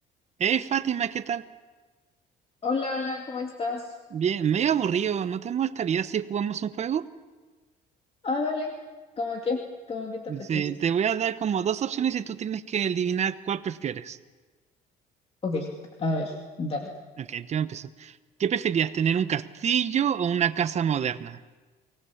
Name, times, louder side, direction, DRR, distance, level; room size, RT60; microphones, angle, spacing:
voice 1, 0.4-1.4 4.1-7.1 10.3-14.2 17.3-18.1 18.4-21.4, right 8 dB, 40° right, 13 dB, 0.9 m, -26 dB
voice 2, 2.6-3.9 8.2-8.7 9.2-9.6 9.9-10.6 15.4-15.7 16.0-16.9, left 3 dB, 35° left, 2 dB, 2.3 m, -29 dB
24.0 x 19.0 x 7.2 m, 1.3 s
cardioid pair, 110°, 17 cm